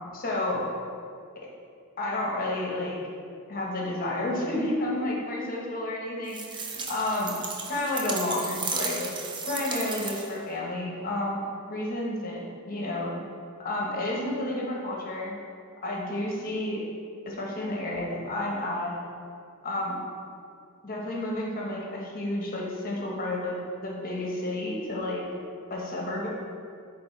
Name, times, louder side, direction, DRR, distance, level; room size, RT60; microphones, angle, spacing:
voice 1, 0.1-0.7 2.0-3.0 3.5-7.3 7.7-9.1 9.5-11.4 11.7-13.1 13.6-15.4 15.8-16.8 17.2-18.9 19.6-20.0 20.8-23.5 23.8-25.2 25.7-26.3, left 1 dB, 40° left, -3 dB, 1.1 m, -31 dB
sound 1, 6.3-10.5, right 4 dB, 20° right, 0.4 m, -34 dB
8.4 x 3.6 x 3.2 m, 2.3 s
head